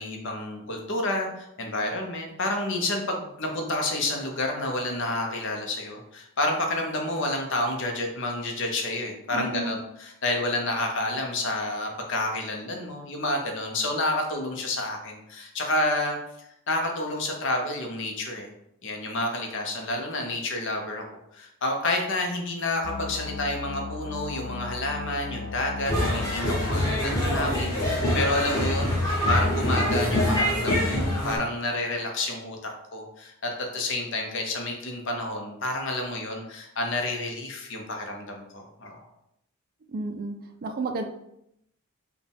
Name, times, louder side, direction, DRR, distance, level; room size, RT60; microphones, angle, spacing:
voice 1, 0.0-16.2 16.7-18.5 18.8-21.0 21.3-32.6 32.9-39.0, left 2 dB, 55° left, 2 dB, 0.8 m, -29 dB
voice 2, 9.3-9.7 39.9-40.4 40.6-41.0, right 3 dB, 40° right, 5 dB, 0.4 m, -31 dB
sound 1, 22.8-26.9, left 4 dB, 85° left, 0.5 m, -36 dB
sound 2, 25.9-31.4, left 1 dB, 15° left, 1.1 m, -24 dB
4.8 x 2.3 x 3.4 m, 0.80 s
head